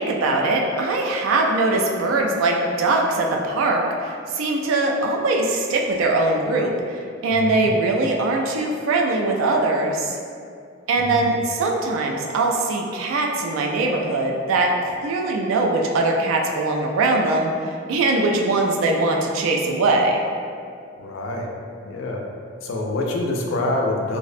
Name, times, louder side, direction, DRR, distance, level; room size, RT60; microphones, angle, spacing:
voice 1, 0.0-10.2 10.9-20.2, right 2 dB, 85° right, 1 dB, 0.3 m, -21 dB
voice 2, 7.3-7.7 11.0-11.3 21.0-21.5 21.8-22.2 22.6-24.2, left 2 dB, 75° left, 0 dB, 0.4 m, -26 dB
2.5 x 2.0 x 2.5 m, 2.3 s
head